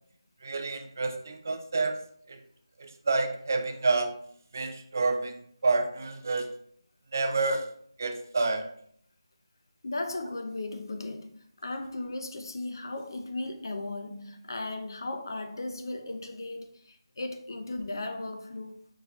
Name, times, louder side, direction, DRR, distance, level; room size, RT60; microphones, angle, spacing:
voice 1, 0.4-2.0 2.3-2.4 2.8-4.1 4.5-6.5 7.1-7.7 8.0-8.7, right 3 dB, 35° right, 0.4 m, -29 dB
voice 2, 9.8-18.9, left 2 dB, 45° left, 0.5 m, -36 dB
4.9 x 4.0 x 2.3 m
figure-of-eight pair, 175°, 3 cm